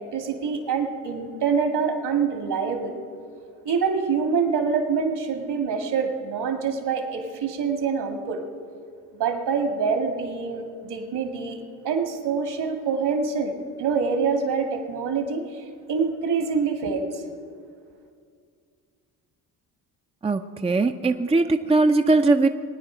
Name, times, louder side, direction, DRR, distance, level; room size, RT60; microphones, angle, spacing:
voice 1, 0.0-2.9 3.6-8.4 9.2-15.4 15.9-17.2, right 5 dB, 65° right, 5 dB, 2.1 m, -25 dB
voice 2, 20.2-22.5, right 3 dB, 15° right, 6 dB, 0.6 m, -20 dB
20.5 x 9.5 x 5.0 m, 2.3 s
supercardioid pair, 60°, 43 cm